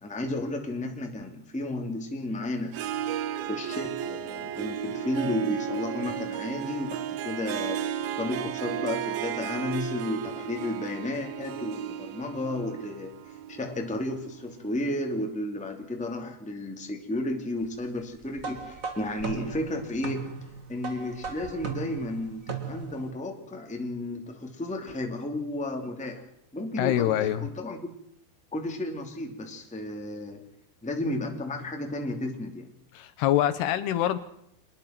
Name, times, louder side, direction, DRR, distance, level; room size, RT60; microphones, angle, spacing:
voice 1, 0.0-2.8 3.4-20.3 20.7-26.2 26.5-27.8 28.5-30.4 30.8-32.7, left 1 dB, ahead, 1.9 m, -33 dB
Harp, 2.7-14.5, right 10 dB, 70° right, 2.6 m, -34 dB
sound 1, 18.4-23.1, right 5 dB, 40° right, 1.2 m, -37 dB
voice 2, 26.8-27.5 32.9-34.2, left 12 dB, 75° left, 2.9 m, -25 dB
26.5 x 20.0 x 6.0 m
omnidirectional pair, 4.9 m